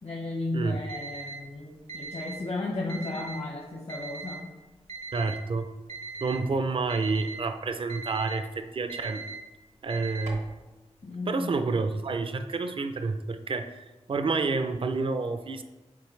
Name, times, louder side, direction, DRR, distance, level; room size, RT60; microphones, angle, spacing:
voice 1, 0.0-4.4 11.0-11.4, left 2 dB, 65° left, -3 dB, 1.1 m, -34 dB
Alarm, 0.9-1.4 1.9-2.4 2.9-3.4 3.9-4.4 4.9-5.4 5.9-6.4 6.9-7.4 7.9-8.4 8.9-9.4 9.9-10.4, right 4 dB, 85° right, 1.1 m, -39 dB
voice 2, 5.1-5.7 6.2-9.2 9.8-10.5 11.3-15.6, right 3 dB, 50° right, 9 dB, 0.4 m, -29 dB
8.6 x 4.1 x 3.2 m, 1.1 s
wide cardioid pair, 100°, 11 cm